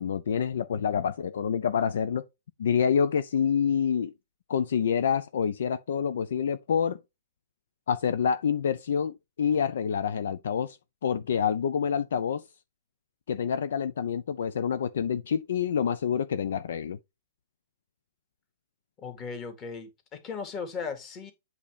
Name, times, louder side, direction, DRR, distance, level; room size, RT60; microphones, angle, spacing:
voice 1, 0.0-2.2 2.6-4.1 4.5-7.0 7.9-12.4 13.3-17.0, left 7 dB, 70° left, 0.4 m, -27 dB
voice 2, 19.0-21.3, left 5 dB, 30° left, 2.0 m, -37 dB
8.2 x 2.9 x 4.9 m
hypercardioid pair, 115°, 0 cm